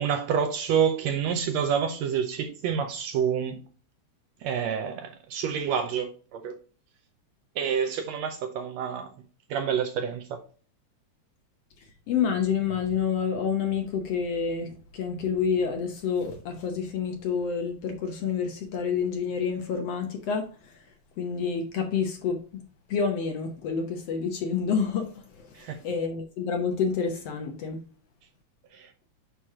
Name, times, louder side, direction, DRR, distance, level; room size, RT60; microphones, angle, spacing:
voice 1, 0.0-3.6 4.4-6.6 7.6-9.1 9.5-10.4 25.5-25.8 28.7-28.9, right 7 dB, 75° right, 1.7 m, -28 dB
voice 2, 12.1-20.8 21.2-22.6 22.9-27.8, left 6 dB, 65° left, 1.7 m, -28 dB
9.1 x 3.1 x 3.6 m
omnidirectional pair, 3.5 m